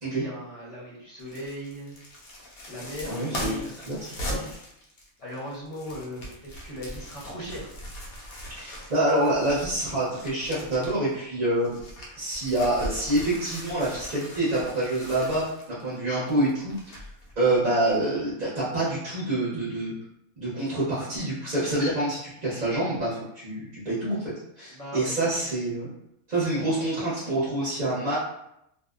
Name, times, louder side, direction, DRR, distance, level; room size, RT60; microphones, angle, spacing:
voice 1, 0.1-2.0 2.7-4.6 5.2-7.7 24.7-25.5, equal, 30° left, -7 dB, 0.7 m, -39 dB
sound 1, 1.2-11.1 11.5-17.5 17.9-18.0, equal, 80° left, 1.1 m, -40 dB
voice 2, 3.1-3.5 3.9-4.0 4.3-4.5 8.6-11.7 12.2-17.1 17.4-19.9 20.4-25.9 26.3-28.2, right 1 dB, 40° right, -9 dB, 0.8 m, -27 dB
2.7 x 2.0 x 2.4 m, 0.78 s
omnidirectional pair, 1.5 m